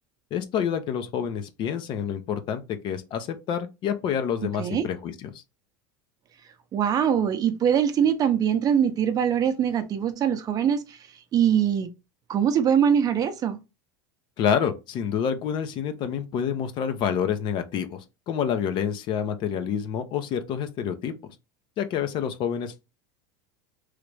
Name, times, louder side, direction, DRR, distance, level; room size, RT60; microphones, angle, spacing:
voice 1, 0.3-5.4 14.4-21.1 21.8-22.7, left 8 dB, 45° left, 0.6 m, -28 dB
voice 2, 6.7-11.0 11.3-11.9 12.3-13.6, right 8 dB, 35° right, 0.6 m, -22 dB
3.2 x 2.5 x 3.2 m
supercardioid pair, 115°, 11 cm